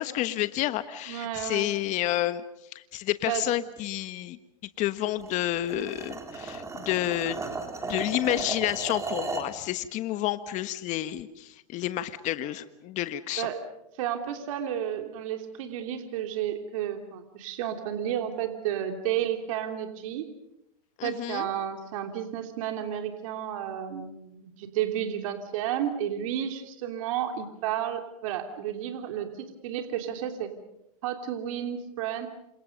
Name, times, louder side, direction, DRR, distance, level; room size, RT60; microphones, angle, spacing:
voice 1, 0.0-2.4 2.9-4.4 4.8-7.4 7.8-13.5 21.0-21.5, left 14 dB, 40° left, 12 dB, 1.4 m, -30 dB
voice 2, 1.1-1.7 3.2-3.4 13.4-13.6 14.0-20.3 21.0-30.5 31.0-32.3, right 10 dB, 65° right, 5 dB, 3.2 m, -32 dB
sound 1, 5.2-9.5, right 3 dB, 15° right, 3.8 m, -35 dB
29.0 x 27.0 x 5.4 m, 0.81 s
hypercardioid pair, 115°, 18 cm